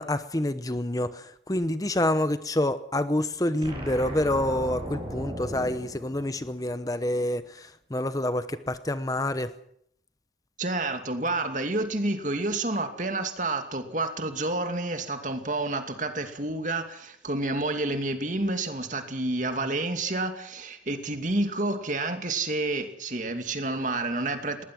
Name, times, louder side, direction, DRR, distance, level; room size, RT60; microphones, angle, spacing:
voice 1, 0.0-9.5, left 1 dB, 20° left, 12 dB, 0.8 m, -27 dB
sound 1, 3.6-6.9, equal, 30° right, 7.6 m, -37 dB
voice 2, 10.6-24.6, right 2 dB, 45° right, 6 dB, 2.6 m, -29 dB
20.0 x 19.0 x 7.8 m, 0.72 s
head